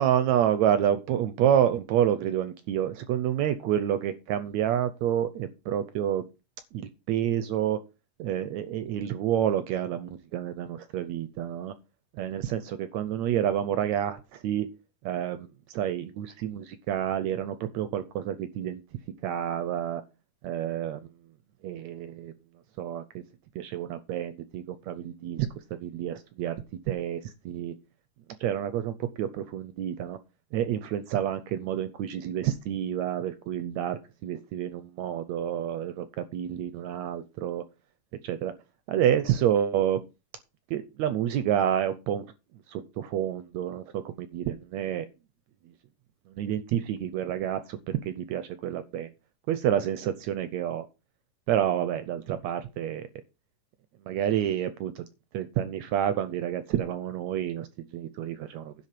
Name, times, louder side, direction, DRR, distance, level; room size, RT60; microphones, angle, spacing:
voice 1, 0.0-6.2 6.7-7.8 8.2-11.7 12.2-14.7 15.0-18.8 19.2-20.0 20.4-21.1 21.6-22.3 22.8-23.2 23.5-25.5 25.8-26.6 26.9-27.2 27.4-27.7 28.4-30.2 30.5-37.6 38.2-38.5 38.9-40.0 40.7-42.2 42.7-45.1 46.3-49.1 49.5-50.9 51.5-53.0 54.1-55.0 55.3-57.7 57.9-58.7, right 10 dB, 80° right, 12 dB, 1.6 m, -28 dB
11.0 x 3.9 x 7.4 m, 0.29 s
omnidirectional pair, 3.9 m